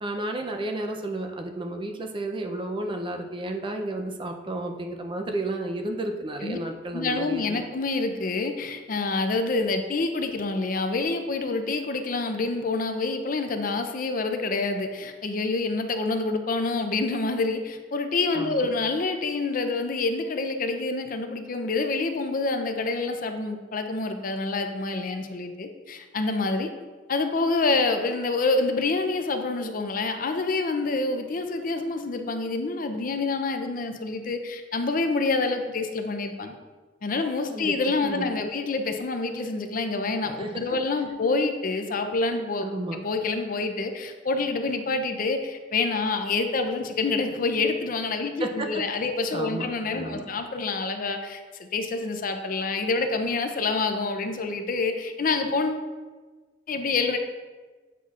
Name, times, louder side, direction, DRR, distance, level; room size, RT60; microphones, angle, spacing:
voice 1, 0.0-7.6 18.3-18.7 37.5-38.5 40.4-40.8 42.6-43.0 48.4-49.0 49.3-50.3, right 1 dB, 30° right, 3 dB, 0.5 m, -32 dB
voice 2, 6.9-26.7 27.1-36.6 37.0-42.7 43.0-55.9 56.7-57.2, left 3 dB, 50° left, 6 dB, 0.5 m, -27 dB
8.3 x 5.7 x 2.4 m, 1.3 s
head